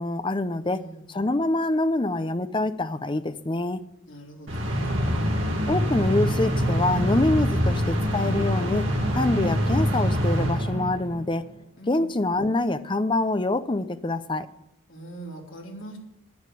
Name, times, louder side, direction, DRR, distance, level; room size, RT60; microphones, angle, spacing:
voice 1, 0.0-0.8 1.1-3.8 5.7-11.4 11.9-14.5, left 2 dB, 25° left, 11 dB, 0.6 m, -25 dB
voice 2, 0.6-1.0 4.1-4.9 11.8-12.1 14.9-16.0, right 2 dB, 65° left, 0 dB, 3.2 m, -42 dB
sound 1, 4.5-11.3, equal, 60° right, 2.6 m, -25 dB
10.5 x 9.5 x 8.3 m, 0.82 s
head